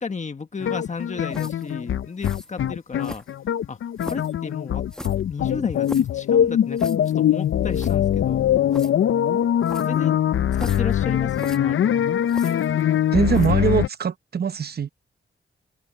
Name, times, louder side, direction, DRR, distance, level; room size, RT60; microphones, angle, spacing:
voice 1, 0.0-3.2 3.7-3.8 4.0-4.8 5.3-6.9 7.1-8.5 9.8-10.2 10.6-12.1, left 4 dB, 35° left, 1.4 m, -33 dB
sound 1, 0.6-13.9, left 10 dB, 70° left, 0.5 m, -22 dB
sound 2, 1.3-1.7 2.2-2.5 3.0-3.5 4.0-4.3 4.9-6.2 6.8-7.1 7.4-7.5 7.7-8.0 8.7-8.9 9.6-10.0 10.5-11.0 11.3-11.6 12.3-12.9 13.3-13.6, equal, 5° left, 1.4 m, -38 dB
voice 2, 13.1-14.9, right 7 dB, 50° right, 0.7 m, -22 dB
open air
wide cardioid pair, 100°, 21 cm